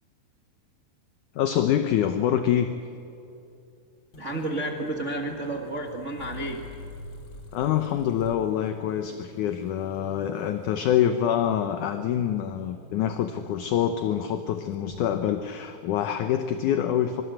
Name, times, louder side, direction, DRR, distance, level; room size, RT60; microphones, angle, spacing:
voice 1, 1.4-2.7 7.5-17.2, left 10 dB, 70° left, 8 dB, 2.0 m, -25 dB
sound 1, 4.1-15.0, left 1 dB, 45° left, 3.5 m, -47 dB
voice 2, 4.2-6.7, right 1 dB, 45° right, 2 dB, 0.9 m, -31 dB
24.5 x 23.5 x 7.9 m, 2.7 s
omnidirectional pair, 4.4 m